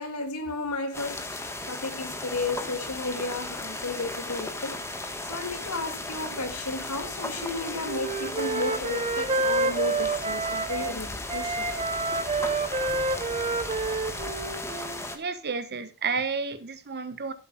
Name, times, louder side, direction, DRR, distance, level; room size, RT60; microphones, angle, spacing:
voice 1, 0.0-11.7, left 3 dB, 85° left, 2.2 m, -33 dB
sound 1, 0.9-15.2, left 2 dB, 10° left, 1.4 m, -36 dB
Wind instrument woodwind instrument, 7.4-10.9 11.3-15.0, right 3 dB, 30° right, 0.9 m, -29 dB
voice 2, 15.1-17.3, right 5 dB, 50° right, 1.1 m, -31 dB
15.0 x 8.4 x 2.4 m
head